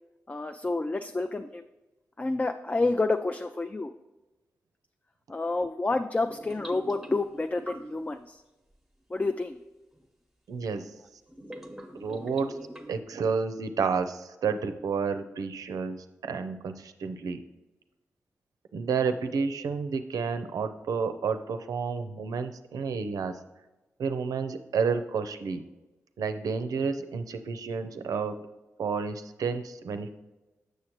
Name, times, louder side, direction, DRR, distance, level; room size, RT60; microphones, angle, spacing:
voice 1, 0.3-1.6 2.2-3.9 5.3-8.4 9.1-9.6, left 3 dB, 25° left, 7 dB, 0.4 m, -29 dB
sound 1, 6.2-8.2 9.9-10.0 11.3-13.0, right 1 dB, 5° right, 0.9 m, -44 dB
voice 2, 10.5-10.9 11.9-12.6 12.9-17.4 18.7-23.3 24.0-25.6 26.2-28.4 28.8-30.1, right 5 dB, 80° right, 9 dB, 0.5 m, -30 dB
6.5 x 6.4 x 3.0 m, 1.1 s
supercardioid pair, 40°, 6 cm